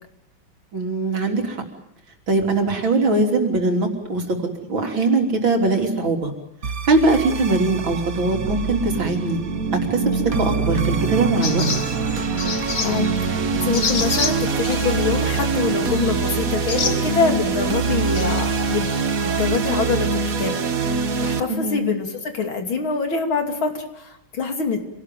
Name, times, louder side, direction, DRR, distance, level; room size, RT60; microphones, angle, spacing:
voice 1, 0.7-1.6 2.3-4.2 4.7-6.3 6.9-9.4 9.9-11.7 21.5-21.8, right 3 dB, 75° right, 3 dB, 4.1 m, -21 dB
sound 1, 6.6-21.4, right 5 dB, 45° right, 1.7 m, -24 dB
sound 2, 11.4-19.0, left 5 dB, 45° left, 1.9 m, -30 dB
voice 2, 12.8-18.9 19.2-24.8, left 5 dB, 90° left, 5 dB, 3.7 m, -25 dB
27.0 x 18.5 x 9.2 m, 0.82 s
omnidirectional pair, 2.2 m